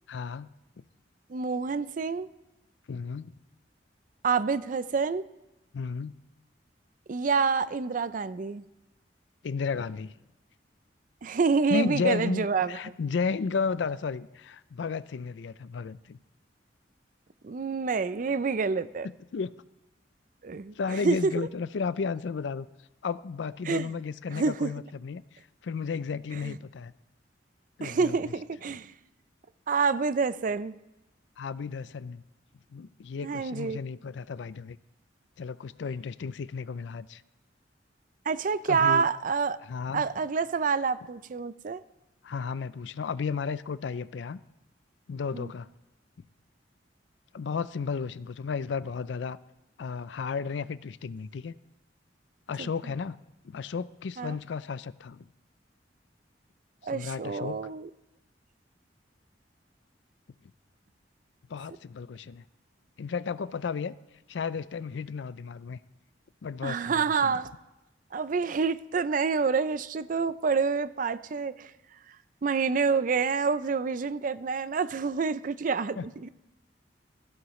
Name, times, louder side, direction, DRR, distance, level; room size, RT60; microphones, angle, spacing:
voice 1, 0.1-0.5 2.9-3.3 5.7-6.2 9.4-10.1 11.7-16.2 19.0-19.5 20.8-22.7 23.0-25.2 25.6-26.9 27.8-28.2 31.4-32.2 32.7-34.8 35.4-37.2 38.7-39.1 39.6-40.0 42.2-44.4 45.1-45.7 47.3-49.4 49.8-51.5 52.5-53.2 53.4-55.2 56.8-57.6 61.5-62.4 63.0-63.9 64.3-65.8 66.4-67.4 76.0-76.1, left 5 dB, 80° left, 0.4 m, -33 dB
voice 2, 1.3-2.3 4.2-5.2 7.1-8.6 11.2-12.9 17.4-19.1 20.4-20.7 21.0-21.5 23.7-23.9 24.3-24.7 26.4-26.6 27.8-28.9 29.7-30.7 33.2-33.8 38.3-39.6 39.9-41.8 45.3-45.5 52.6-52.7 54.2-54.4 56.8-57.9 66.6-67.5 68.1-71.7 72.4-76.3, right 5 dB, 45° right, 0.4 m, -27 dB
17.5 x 14.0 x 3.2 m
head